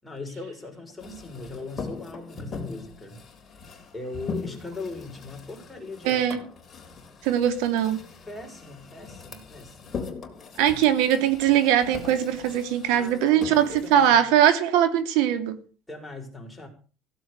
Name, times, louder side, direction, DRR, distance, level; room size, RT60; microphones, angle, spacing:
voice 1, 0.0-3.3 3.9-6.5 8.3-10.0 12.9-14.2 15.9-16.7, left 3 dB, 5° left, 4.9 m, -39 dB
sound 1, 1.0-14.1, left 5 dB, 25° left, 4.1 m, -40 dB
voice 2, 6.0-6.4 7.2-8.0 10.6-15.5, right 10 dB, 75° right, 2.8 m, -21 dB
16.0 x 8.0 x 8.1 m
cardioid pair, 140°, 0 cm